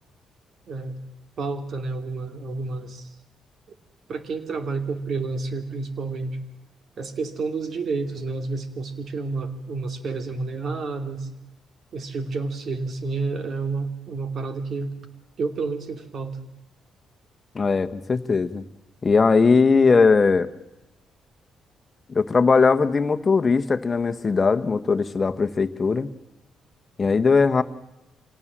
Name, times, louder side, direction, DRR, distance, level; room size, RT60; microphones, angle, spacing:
voice 1, 1.4-3.1 4.1-6.4 7.0-11.3 11.9-14.9 15.4-16.4, right 3 dB, 55° right, 8 dB, 2.7 m, -30 dB
voice 2, 17.5-18.6 19.0-20.5 22.1-26.1 27.0-27.6, left 4 dB, 30° left, 10 dB, 1.3 m, -19 dB
26.0 x 18.0 x 7.5 m, 0.92 s
cardioid pair, 90°, 0 cm